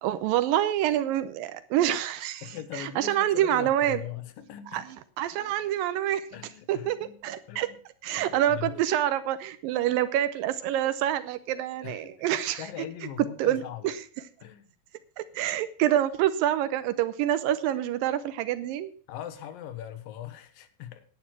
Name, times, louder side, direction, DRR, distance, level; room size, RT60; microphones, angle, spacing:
voice 1, 0.0-2.4 2.7-4.0 4.7-4.8 5.2-6.3 6.7-7.7 8.0-12.6 13.4-13.9 15.2-18.9, right 12 dB, 80° right, 14 dB, 2.4 m, -27 dB
voice 2, 2.4-4.9 6.3-7.2 7.5-7.8 8.2-8.7 11.8-12.2 12.6-13.9 14.4-14.6 19.1-21.0, left 11 dB, 80° left, 10 dB, 2.8 m, -40 dB
11.0 x 9.4 x 6.0 m, 0.42 s
omnidirectional pair, 4.0 m